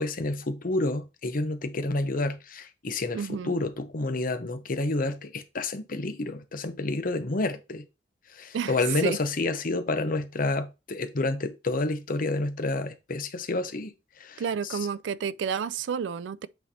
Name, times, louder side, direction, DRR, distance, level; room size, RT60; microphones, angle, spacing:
voice 1, 0.0-7.8 8.3-13.9 14.2-14.8, left 2 dB, 50° left, 0.8 m, -29 dB
voice 2, 3.1-3.5 8.5-8.8 9.0-9.2 14.4-16.5, right 7 dB, 85° right, 0.4 m, -30 dB
8.1 x 3.3 x 4.2 m
head